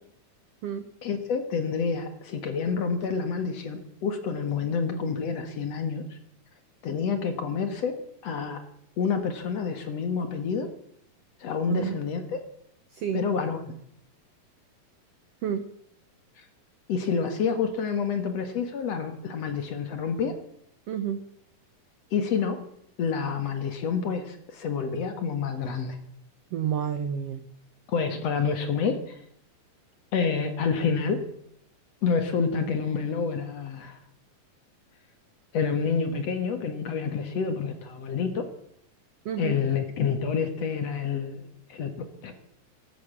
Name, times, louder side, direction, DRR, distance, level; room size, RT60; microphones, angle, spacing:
voice 1, 1.0-6.2 6.8-7.9 8.2-8.6 9.0-10.7 11.4-12.4 13.1-13.7 16.4-16.5 16.9-20.3 22.1-22.6 23.0-26.0 27.9-29.2 30.1-31.2 32.0-34.0 35.5-38.4 39.4-41.9 42.2-42.3, left 6 dB, 55° left, 7 dB, 2.3 m, -28 dB
voice 2, 11.7-12.0 12.9-13.2 15.4-15.7 20.9-21.3 26.5-27.4 39.2-39.6, right 9 dB, 85° right, 10 dB, 1.3 m, -30 dB
14.5 x 12.0 x 7.3 m, 0.70 s
omnidirectional pair, 4.1 m